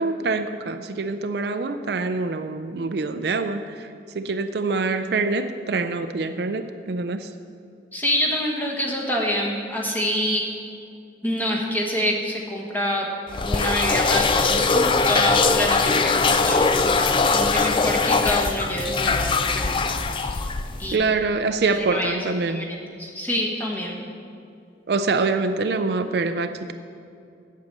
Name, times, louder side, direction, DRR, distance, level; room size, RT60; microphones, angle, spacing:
voice 1, 0.0-7.3 20.9-22.7 24.9-26.7, right 3 dB, 65° right, 9 dB, 0.4 m, -25 dB
voice 2, 7.9-10.5 11.2-13.1 13.4-20.4 20.8-21.1 21.6-24.0, equal, 10° left, -2 dB, 1.3 m, -27 dB
sound 1, 13.3-21.0, left 4 dB, 25° left, 0.3 m, -21 dB
8.4 x 8.0 x 6.8 m, 2.5 s
head